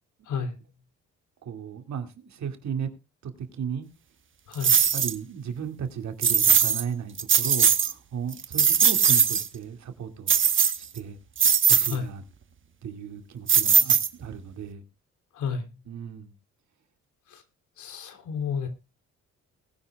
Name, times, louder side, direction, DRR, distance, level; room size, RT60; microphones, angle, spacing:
voice 1, 1.4-2.9 3.2-3.9 4.9-10.3 10.9-11.2 11.7-12.2 12.8-14.8 15.9-16.3, right 7 dB, 65° right, 2.3 m, -35 dB
sound 1, 4.6-5.1 6.2-6.8 7.2-7.9 8.3-9.5 10.3-11.0 11.4-11.9 13.5-14.3, right 7 dB, 40° right, 1.2 m, -20 dB
voice 2, 17.8-18.7, left 6 dB, 75° left, 3.1 m, -31 dB
20.5 x 10.0 x 2.3 m
cardioid pair, 90°, 30 cm